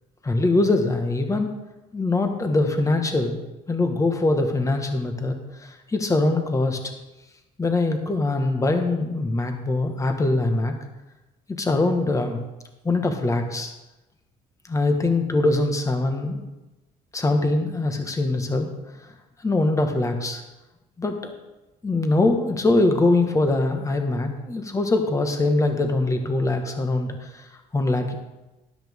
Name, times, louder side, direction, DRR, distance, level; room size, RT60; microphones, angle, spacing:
voice 1, 0.2-1.5 1.9-3.4 3.7-6.8 7.6-10.7 11.5-12.4 12.8-13.7 14.7-16.4 17.1-18.7 19.4-20.4 21.0-21.3 21.8-27.5 27.7-28.1, left 2 dB, 20° left, 5 dB, 1.5 m, -23 dB
12.5 x 11.0 x 3.6 m, 1.0 s
cardioid pair, 110°, 17 cm